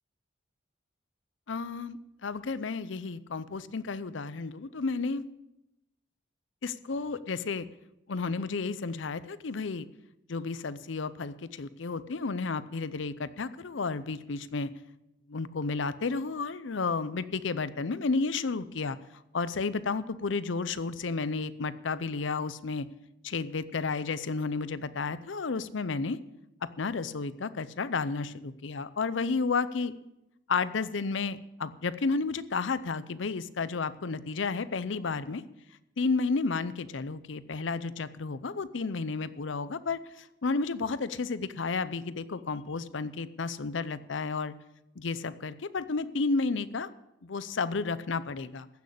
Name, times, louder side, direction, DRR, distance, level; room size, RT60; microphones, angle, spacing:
voice 1, 1.5-5.2 6.6-7.7 8.1-9.9 10.3-14.7 15.3-19.0 19.3-22.9 23.2-26.2 26.8-29.9 30.5-35.4 36.0-44.5 45.0-46.9 47.2-48.7, left 4 dB, 70° left, 15 dB, 0.6 m, -32 dB
15.0 x 6.4 x 8.4 m, 0.89 s
head